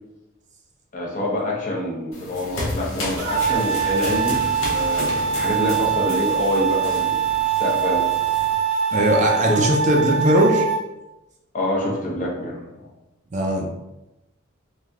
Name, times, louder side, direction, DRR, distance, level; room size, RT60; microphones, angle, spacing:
voice 1, 0.9-7.3 7.6-8.1 9.5-9.7 11.5-12.9, left 1 dB, 40° left, -3 dB, 0.7 m, -26 dB
sound 1, 2.1-8.5, left 1 dB, 80° left, 0.6 m, -32 dB
sound 2, 3.2-10.8, right 7 dB, 85° right, 0.7 m, -23 dB
voice 2, 8.9-10.7 13.3-13.7, right 1 dB, 35° right, 1 dB, 0.4 m, -19 dB
3.3 x 2.6 x 2.3 m, 0.96 s
head